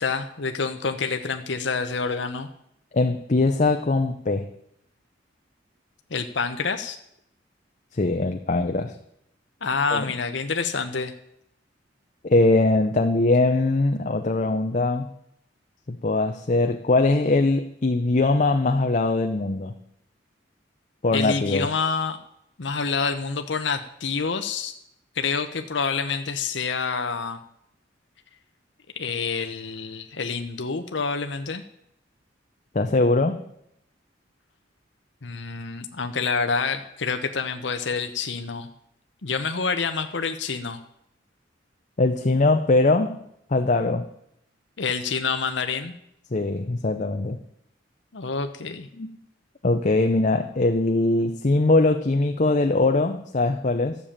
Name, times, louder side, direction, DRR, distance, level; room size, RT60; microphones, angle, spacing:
voice 1, 0.0-2.5 6.1-7.0 9.6-11.1 21.1-22.2 22.6-24.8 25.1-27.4 29.0-31.6 35.2-38.7 39.2-40.8 44.8-45.9 48.1-48.9, left 5 dB, 70° left, 7 dB, 0.9 m, -27 dB
voice 2, 2.9-4.5 7.9-8.9 9.9-10.0 12.2-15.1 15.9-19.7 21.0-21.7 32.7-33.4 42.0-43.2 43.5-44.1 46.3-47.4 49.0-49.1 49.6-54.0, left 2 dB, 40° left, 6 dB, 0.7 m, -21 dB
12.5 x 7.0 x 8.8 m, 0.75 s
head